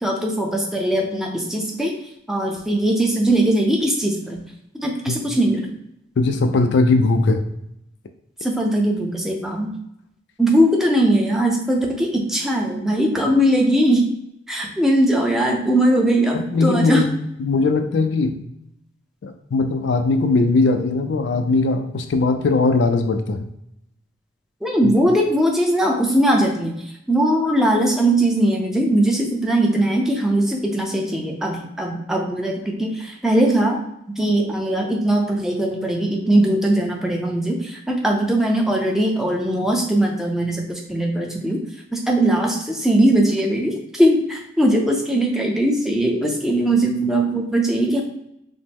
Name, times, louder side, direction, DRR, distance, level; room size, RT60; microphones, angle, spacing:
voice 1, 0.0-1.9 2.3-4.4 4.8-5.7 8.4-9.7 10.4-14.0 14.5-17.0 24.6-26.8 27.1-33.8 34.2-41.6 41.9-48.0, right 1 dB, ahead, 0 dB, 0.5 m, -20 dB
voice 2, 6.2-7.5 16.3-17.1 17.4-18.4 19.2-23.5 24.8-24.9, left 3 dB, 65° left, 7 dB, 0.4 m, -19 dB
5.1 x 2.0 x 3.5 m, 0.80 s
head